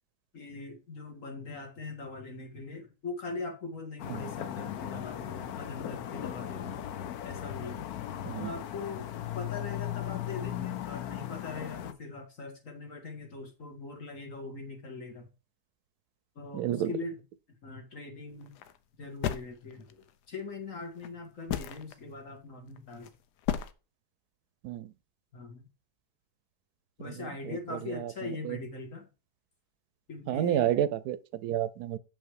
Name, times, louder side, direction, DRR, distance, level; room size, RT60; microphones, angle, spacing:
voice 1, 0.3-6.8 7.2-7.9 8.4-15.3 16.4-17.2 17.6-18.5 19.0-23.1 25.3-25.6 27.0-29.1 30.1-30.7, left 3 dB, 55° left, 2.4 m, -41 dB
sound 1, 4.0-11.9, left 11 dB, 75° left, 1.2 m, -37 dB
voice 2, 16.5-16.9 24.6-24.9 27.5-27.6 27.9-28.1 28.4-28.6 30.3-32.0, right 11 dB, 80° right, 1.1 m, -30 dB
sound 2, 18.4-18.8 19.2-20.1 21.0-21.1 21.5-21.9 22.8-23.1 23.4-23.7, left 10 dB, 90° left, 1.3 m, -33 dB
7.1 x 5.7 x 4.7 m
omnidirectional pair, 1.7 m